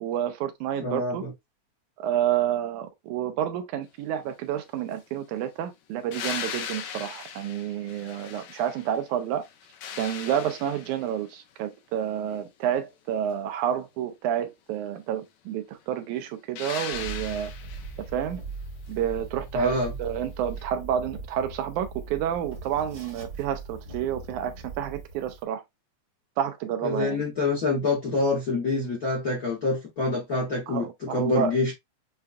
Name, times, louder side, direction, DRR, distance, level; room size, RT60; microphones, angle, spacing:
voice 1, 0.0-1.2 2.0-9.5 10.0-17.5 18.1-18.4 18.9-25.6 26.4-27.2 30.7-31.5, right 10 dB, 90° right, 2.1 m, -29 dB
voice 2, 0.8-1.3 19.5-19.9 26.8-31.7, left 3 dB, 55° left, 1.0 m, -26 dB
sound 1, 6.1-9.0 9.4-11.2 16.6-18.0 20.6-20.7, left 8 dB, 80° left, 2.0 m, -38 dB
sound 2, 16.9-25.4, right 3 dB, 50° right, 1.2 m, -40 dB
6.6 x 2.4 x 2.4 m
omnidirectional pair, 3.5 m